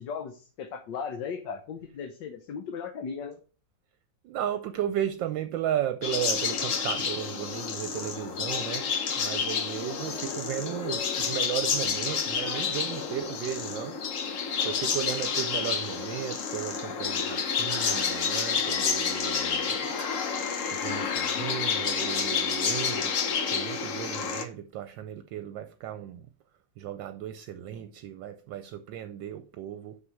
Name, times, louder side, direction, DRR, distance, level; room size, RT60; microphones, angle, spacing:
voice 1, 0.0-3.4, left 6 dB, 70° left, 1.5 m, -37 dB
voice 2, 4.2-8.9 9.2-14.0 14.6-20.1 20.7-26.3 26.8-30.0, right 11 dB, 75° right, 1.3 m, -35 dB
sound 1, 6.0-24.4, left 6 dB, 50° left, 1.1 m, -29 dB
6.1 x 6.0 x 6.3 m
omnidirectional pair, 2.1 m